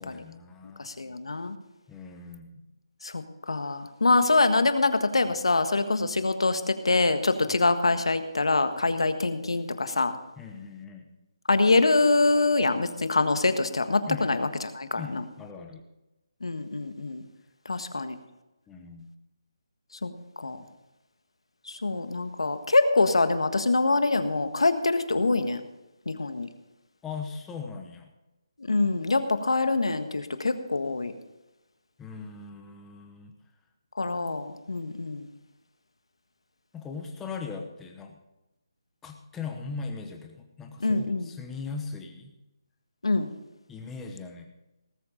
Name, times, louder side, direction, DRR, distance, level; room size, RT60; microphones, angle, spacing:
voice 1, 0.0-0.9 1.9-2.7 7.5-7.7 10.4-11.1 14.1-14.3 15.0-15.8 17.7-18.0 18.7-19.1 27.0-28.1 32.0-33.3 36.7-38.2 39.0-42.3 43.7-44.5, left 5 dB, 5° left, 3 dB, 1.0 m, -39 dB
voice 2, 0.8-1.5 3.0-10.1 11.5-14.5 14.7-15.2 16.4-17.2 17.6-18.2 20.0-20.6 21.7-25.6 26.0-26.5 28.6-31.1 34.0-35.3 40.8-41.3 43.0-43.3, left 3 dB, 90° left, 9 dB, 1.5 m, -25 dB
18.5 x 7.5 x 5.2 m, 0.99 s
hypercardioid pair, 170°, 3 cm